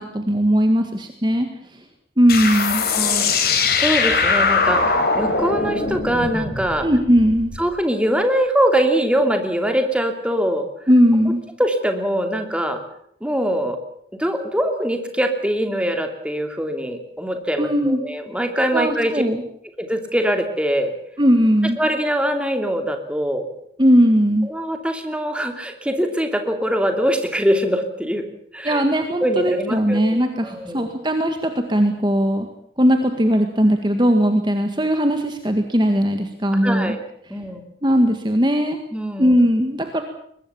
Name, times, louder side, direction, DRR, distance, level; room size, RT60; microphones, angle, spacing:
voice 1, 0.0-1.5 1.7-1.8 2.2-2.8 6.8-7.5 10.9-11.4 17.6-18.0 18.7-19.4 21.2-21.8 23.8-24.5 28.6-32.5 32.8-36.9 37.8-38.8 39.2-40.0, equal, 25° right, 6 dB, 1.8 m, -18 dB
sound 1, 2.3-7.6, left 4 dB, 55° left, 4.4 m, -21 dB
voice 2, 2.9-6.9 7.6-10.7 11.6-12.8 13.2-13.8 14.2-19.2 19.8-20.9 21.8-23.5 24.4-28.3 28.5-28.8 29.2-30.9 36.6-37.0 37.3-37.7 38.9-39.4, equal, 5° right, 5 dB, 2.8 m, -23 dB
23.0 x 21.0 x 7.1 m, 0.70 s
head